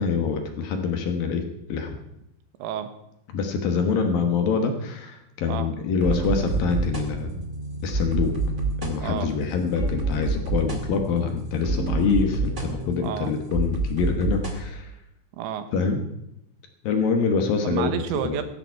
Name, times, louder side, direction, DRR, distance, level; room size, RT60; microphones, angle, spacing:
voice 1, 0.0-1.4 1.7-1.9 3.3-7.3 7.8-8.4 8.8-14.9 15.7-16.0 16.8-17.9 18.2-18.4, left 5 dB, 65° left, 5 dB, 2.6 m, -25 dB
voice 2, 2.6-2.9 5.5-5.7 9.0-9.3 13.0-13.3 15.4-15.7 17.6-18.5, right 9 dB, 85° right, 10 dB, 3.5 m, -30 dB
sound 1, 6.0-14.6, right 3 dB, 30° right, 1.2 m, -28 dB
17.0 x 13.5 x 4.6 m, 0.83 s
omnidirectional pair, 5.1 m